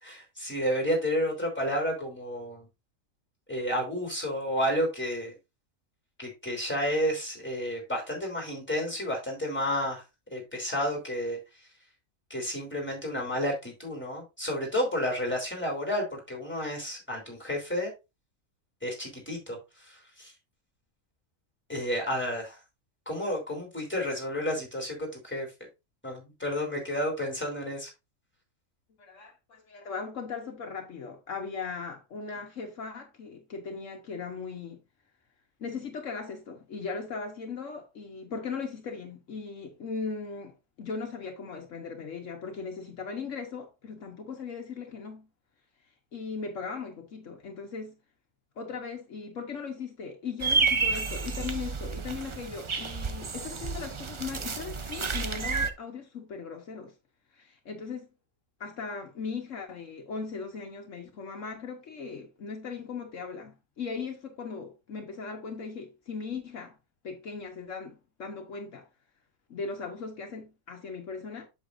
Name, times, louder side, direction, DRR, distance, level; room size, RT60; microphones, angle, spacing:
voice 1, 0.0-2.7 3.5-5.3 6.2-10.0 10.3-11.4 12.3-17.9 18.8-19.6 19.8-20.3 21.7-22.6 23.0-25.5 26.0-27.9, equal, 10° left, 3.3 m, -31 dB
voice 2, 29.0-34.8 35.6-45.3 46.1-48.0 48.6-56.9 57.3-58.1 58.6-66.8 67.0-68.9 69.5-71.5, left 5 dB, 70° left, 1.4 m, -38 dB
sound 1, 50.4-55.7, right 4 dB, 40° right, 0.4 m, -30 dB
8.0 x 7.1 x 2.5 m
omnidirectional pair, 1.4 m